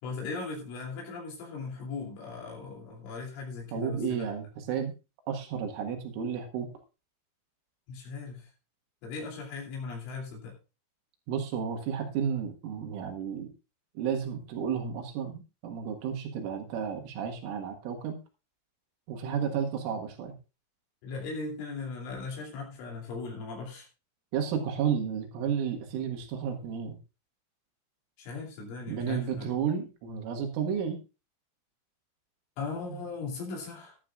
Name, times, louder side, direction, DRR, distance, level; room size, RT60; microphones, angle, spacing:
voice 1, 0.0-4.3 7.9-8.5 9.0-10.6 21.0-23.9 28.2-29.5 32.6-34.0, left 4 dB, 80° left, -1 dB, 5.4 m, -38 dB
voice 2, 3.7-4.9 5.3-6.7 11.3-13.5 14.0-18.2 19.1-20.4 24.3-27.0 28.9-31.0 32.9-33.0, right 7 dB, 85° right, 3 dB, 4.1 m, -32 dB
17.0 x 11.5 x 2.4 m, 0.30 s
omnidirectional pair, 5.6 m